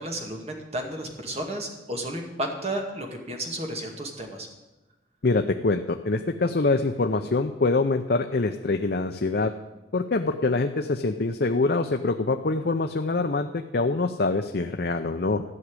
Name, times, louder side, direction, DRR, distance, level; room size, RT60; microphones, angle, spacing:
voice 1, 0.0-4.5, right 1 dB, 35° right, 2 dB, 2.2 m, -32 dB
voice 2, 5.2-9.5 9.9-15.4, left 3 dB, 55° left, 6 dB, 0.6 m, -25 dB
13.5 x 6.2 x 9.8 m, 1.1 s
head